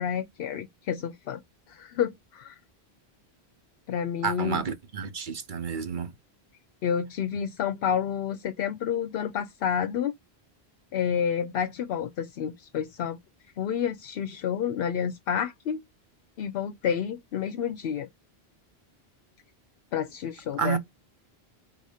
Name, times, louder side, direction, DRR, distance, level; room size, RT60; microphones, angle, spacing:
voice 1, 0.0-1.4 1.7-2.6 3.9-4.6 6.8-10.1 10.9-13.2 13.6-15.8 16.4-18.1 19.9-20.8, left 8 dB, 70° left, 0.7 m, -29 dB
voice 2, 4.2-6.1 20.6-20.8, right 6 dB, 50° right, 0.9 m, -30 dB
4.0 x 2.7 x 4.8 m
omnidirectional pair, 1.1 m